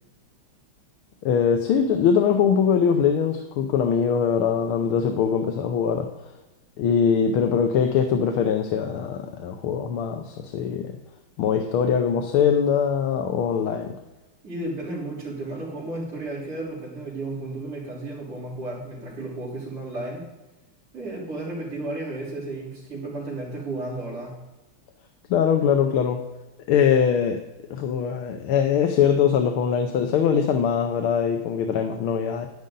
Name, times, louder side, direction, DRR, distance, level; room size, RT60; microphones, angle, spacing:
voice 1, 1.2-6.1 6.8-10.9 11.4-13.9 25.3-26.2 26.7-27.4 27.7-32.5, left 7 dB, 80° left, 5 dB, 1.7 m, -22 dB
voice 2, 14.4-20.3 20.9-24.4, right 2 dB, 45° right, -11 dB, 4.0 m, -33 dB
11.0 x 10.5 x 3.8 m, 1.0 s
omnidirectional pair, 2.3 m